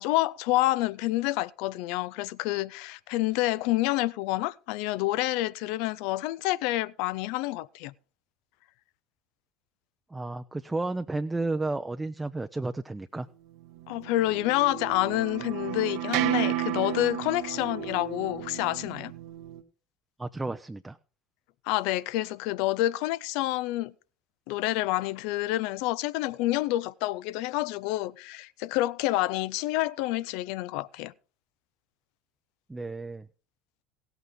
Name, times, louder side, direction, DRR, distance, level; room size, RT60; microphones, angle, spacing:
voice 1, 0.0-7.9 13.9-19.1 21.7-23.9 24.5-31.1, left 17 dB, 60° left, 0.5 m, -28 dB
voice 2, 10.1-13.3 20.2-21.0 32.7-33.3, right 2 dB, 10° right, 0.6 m, -32 dB
sound 1, 13.8-19.6, right 13 dB, 60° right, 1.1 m, -33 dB
17.0 x 8.2 x 3.8 m
figure-of-eight pair, 75°, 0 cm